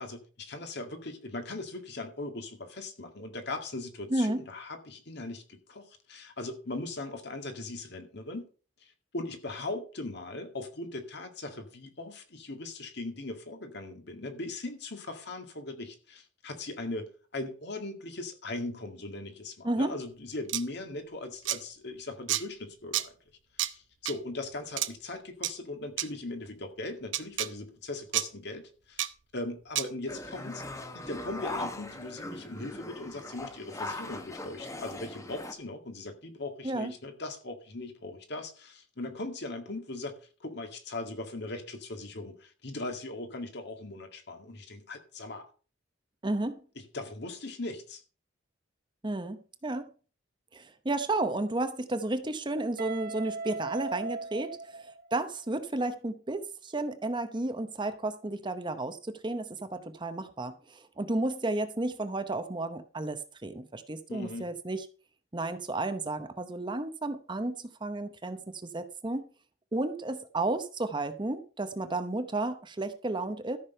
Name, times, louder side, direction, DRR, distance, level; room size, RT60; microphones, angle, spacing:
voice 1, 0.0-8.5 8.8-23.2 23.6-30.6 30.9-45.5 46.8-48.0 64.1-64.5, left 2 dB, 60° left, 2.0 m, -39 dB
voice 2, 4.1-4.4 19.6-19.9 36.6-36.9 46.2-46.6 49.0-49.9 50.5-54.6 55.1-64.8 65.3-69.2 69.7-73.6, right 2 dB, 25° right, 0.8 m, -32 dB
sound 1, 20.5-20.6 21.4-21.6 22.3-22.4 22.9-23.1 23.6-23.7 24.1-24.2 24.8-24.9 25.4-25.5 26.0-26.1 27.1-27.5 28.1-28.3 29.0-29.1 29.8-29.9, right 13 dB, 75° right, 0.8 m, -29 dB
sound 2, 30.1-35.5, left 2 dB, 15° left, 1.2 m, -40 dB
Guitar, 52.8-55.6, right 3 dB, 50° right, 1.0 m, -39 dB
13.5 x 6.2 x 5.5 m
head